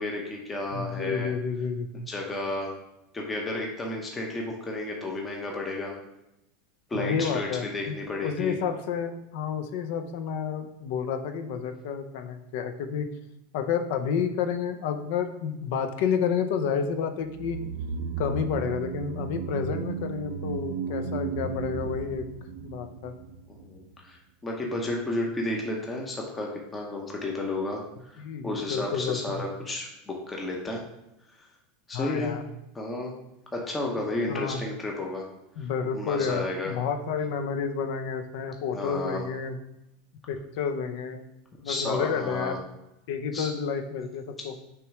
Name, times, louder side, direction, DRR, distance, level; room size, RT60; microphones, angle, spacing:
voice 1, 0.0-1.3 2.1-2.7 3.1-5.9 6.9-8.6 20.9-21.0 23.5-30.8 31.4-31.5 31.9-32.3 32.7-33.1 33.5-35.3 35.6-35.7 35.9-36.7 38.7-39.3 41.6-42.6 43.3-43.5 44.4-44.6, left 2 dB, 15° left, 0 dB, 0.7 m, -32 dB
voice 2, 0.7-2.0 6.9-13.1 13.5-17.6 18.2-22.2 22.6-23.1 28.2-29.5 31.9-32.4 34.3-34.6 35.6-39.6 40.3-41.2 41.6-42.6 43.1-44.5, left 6 dB, 60° left, 8 dB, 0.6 m, -30 dB
sound 1, 17.3-23.7 23.9-24.0, right 5 dB, 70° right, 0.5 m, -34 dB
6.3 x 3.1 x 4.8 m, 0.90 s
supercardioid pair, 155°, 0 cm